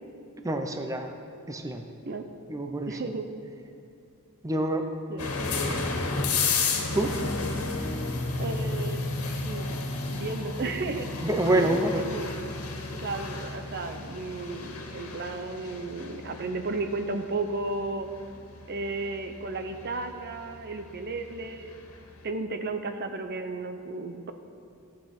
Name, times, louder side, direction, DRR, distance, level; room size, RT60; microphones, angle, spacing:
voice 1, 0.4-1.1 1.5-1.8 2.5-2.9 4.4-4.8 5.7-5.8 6.9-7.1 11.2-12.0, right 1 dB, 15° right, 5 dB, 0.7 m, -26 dB
voice 2, 2.9-3.3 5.1-5.3 8.4-9.8 10.1-12.3 12.9-18.1 18.7-21.7 22.2-24.3, right 3 dB, 50° right, 7 dB, 0.7 m, -34 dB
sound 1, 5.2-21.9, left 3 dB, 80° left, 1.7 m, -33 dB
15.0 x 8.6 x 5.8 m, 2.6 s
head